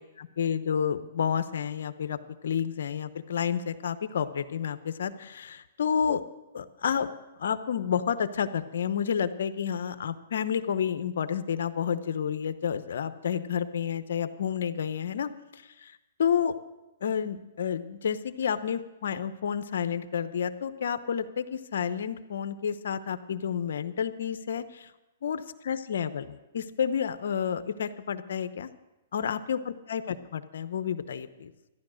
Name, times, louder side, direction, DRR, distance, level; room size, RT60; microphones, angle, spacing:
voice 1, 0.2-6.2 6.5-7.1 7.4-15.3 15.8-15.9 16.2-16.5 17.0-24.9 25.2-28.7 29.1-31.5, left 8 dB, 70° left, 12 dB, 0.9 m, -30 dB
14.0 x 10.5 x 6.4 m, 1.0 s
hypercardioid pair, 145°, 0 cm